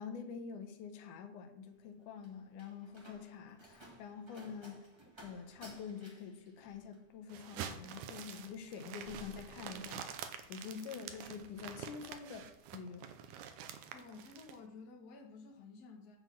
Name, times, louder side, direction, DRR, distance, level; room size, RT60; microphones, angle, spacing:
voice 1, 0.0-4.9 5.2-10.0 10.5-13.1, left 6 dB, 85° left, 6 dB, 2.4 m, -47 dB
Slam, 1.7-10.2 10.5-11.0, right 1 dB, 35° right, 0.4 m, -58 dB
sound 1, 7.3-14.6, right 8 dB, 80° right, 2.1 m, -47 dB
voice 2, 10.6-10.9 13.9-16.2, left 4 dB, 45° left, 0 dB, 1.4 m, -52 dB
9.6 x 4.4 x 7.0 m, 0.79 s
omnidirectional pair, 3.5 m